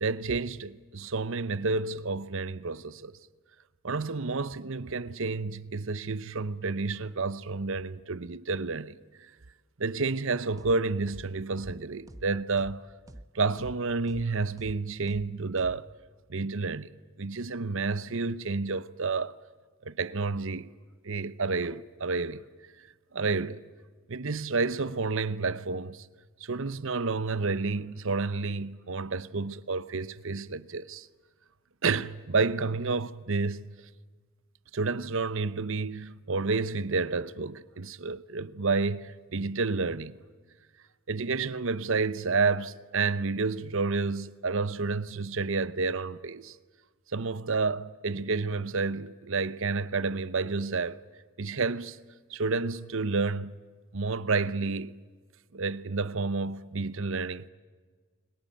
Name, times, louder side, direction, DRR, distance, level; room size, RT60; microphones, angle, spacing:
voice 1, 0.0-3.2 3.8-9.0 9.8-12.8 13.3-15.9 16.3-16.9 17.2-19.4 19.8-20.7 21.0-22.4 23.1-23.6 24.1-26.1 26.4-31.1 31.8-33.7 34.7-40.2 41.1-46.5 47.1-51.0 51.4-52.0 52.3-53.5 53.9-55.0 55.5-57.5, right 4 dB, 60° right, 0.8 m, -30 dB
sound 1, 10.6-10.7 11.1-11.2 11.6-11.7 12.1-12.2 12.6-12.7 13.1-13.2 13.6-13.7 14.1-14.2 14.6-14.7 15.1-15.2 15.6-15.7, right 1 dB, 15° right, 0.9 m, -45 dB
29.5 x 22.5 x 9.0 m
head